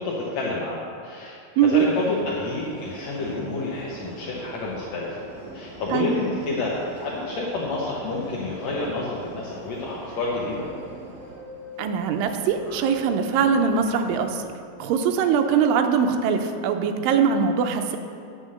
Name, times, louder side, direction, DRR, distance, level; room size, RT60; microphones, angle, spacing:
voice 1, 0.0-5.2 5.5-6.7 6.9-10.7, left 2 dB, 70° left, -5 dB, 1.7 m, -29 dB
voice 2, 1.6-1.9 5.9-6.1 11.8-14.4 14.8-18.0, right 6 dB, 80° right, 5 dB, 2.2 m, -22 dB
Subway metro underground, 1.7-14.5, right 1 dB, 25° right, 1.1 m, -42 dB
9.8 x 5.7 x 6.4 m, 2.4 s
omnidirectional pair, 4.4 m